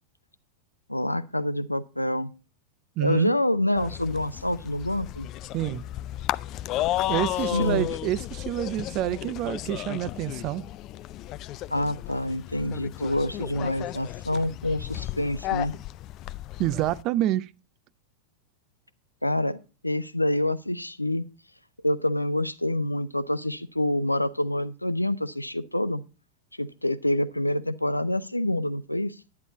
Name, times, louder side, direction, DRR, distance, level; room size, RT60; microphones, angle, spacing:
voice 1, 0.9-2.3 3.0-5.3 7.5-7.9 11.7-15.7 19.2-21.3 21.8-26.0 26.6-29.2, left 1 dB, 85° left, 0.6 m, -27 dB
voice 2, 3.0-3.3 5.5-5.8 7.1-10.6 16.6-17.5, right 14 dB, 40° right, 0.6 m, -28 dB
sound 1, 3.8-17.0, left 14 dB, 35° left, 0.4 m, -33 dB
11.0 x 9.8 x 4.0 m
figure-of-eight pair, 90°, 0 cm